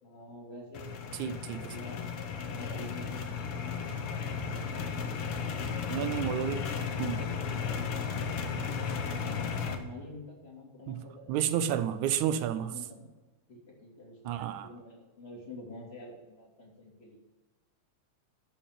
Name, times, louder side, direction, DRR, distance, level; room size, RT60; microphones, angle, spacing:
voice 1, 0.0-2.0 2.4-3.7 4.5-6.8 7.0-8.3 8.9-11.4 12.5-13.1 13.5-17.2, left 1 dB, 20° left, -2 dB, 2.6 m, -48 dB
sound 1, 0.7-9.8, left 6 dB, 65° left, 1.5 m, -34 dB
voice 2, 1.2-1.6 5.9-6.6 7.0-7.2 10.9-12.7 14.3-14.7, right 10 dB, 80° right, 12 dB, 2.0 m, -31 dB
12.5 x 4.5 x 7.3 m, 1.2 s
omnidirectional pair, 3.4 m